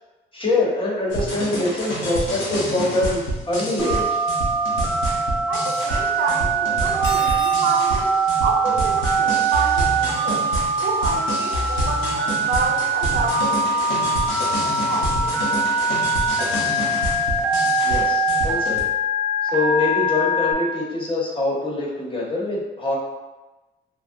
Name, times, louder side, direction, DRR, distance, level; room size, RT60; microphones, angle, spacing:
voice 1, 0.3-4.2 17.8-18.8 19.5-23.0, left 2 dB, 25° left, -5 dB, 1.0 m, -24 dB
sound 1, 1.1-18.8, equal, 85° left, 0.9 m, -28 dB
Telephone, 3.8-20.5, right 2 dB, 5° left, 0.7 m, -22 dB
voice 2, 5.5-8.1 8.4-10.5 10.8-15.6, right 3 dB, 60° right, 1 dB, 0.5 m, -29 dB
Cutlery silverware, 6.9-7.6, left 5 dB, 65° left, 0.5 m, -33 dB
3.5 x 2.0 x 2.5 m, 1.1 s
cardioid pair, 90°, 20 cm